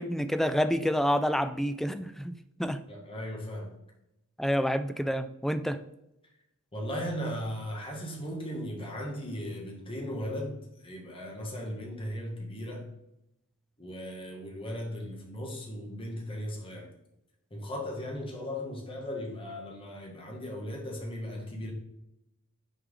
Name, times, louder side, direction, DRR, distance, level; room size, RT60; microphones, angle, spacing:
voice 1, 0.0-2.8 4.4-5.8, equal, ahead, 11 dB, 0.3 m, -28 dB
voice 2, 2.9-3.7 6.7-12.9 13.8-16.9 17.5-21.7, equal, 25° left, -1 dB, 1.6 m, -37 dB
6.5 x 4.7 x 3.7 m, 0.86 s
head